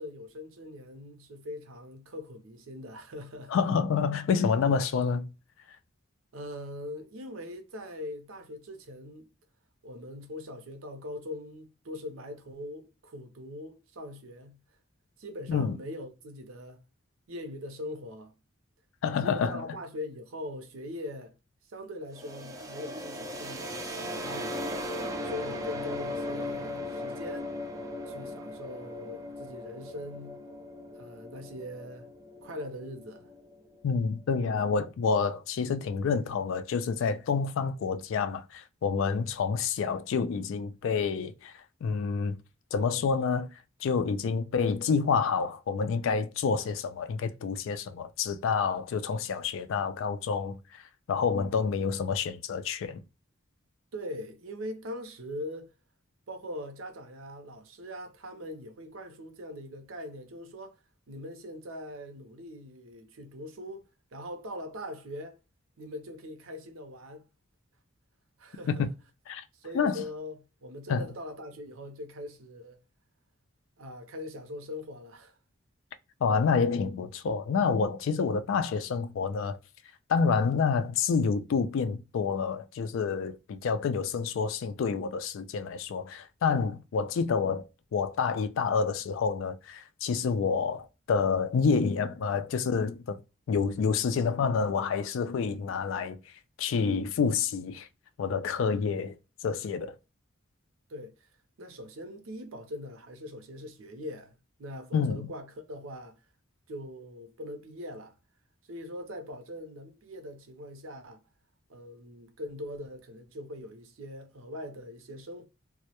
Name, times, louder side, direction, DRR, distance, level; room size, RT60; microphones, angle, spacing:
voice 1, 0.0-3.7 6.3-9.3 9.8-14.6 15.2-16.8 17.3-18.3 19.2-21.4 21.7-24.5 25.2-27.5 28.1-30.4 30.9-32.1 32.4-33.3 53.9-55.7 56.3-60.8 61.1-63.8 64.1-65.4 65.8-67.2 68.4-68.9 69.5-72.8 73.8-75.4 100.9-101.3 101.6-104.3 104.6-106.2 106.7-108.2 108.7-111.2 111.7-115.4, left 1 dB, 75° right, 0.6 m, -41 dB
voice 2, 3.5-5.3 15.5-15.8 19.0-19.7 33.8-41.5 41.8-42.4 42.7-43.5 43.8-50.8 51.1-53.0 68.7-68.8 69.3-69.4 69.7-70.0 70.9-71.1 76.2-79.6 80.1-87.7 87.9-93.2 93.5-96.2 96.6-97.9 98.2-99.2 99.4-99.9 104.9-105.3, left 5 dB, 70° left, 0.3 m, -28 dB
sound 1, 22.1-33.8, left 1 dB, 15° right, 0.3 m, -38 dB
2.2 x 2.0 x 2.8 m
head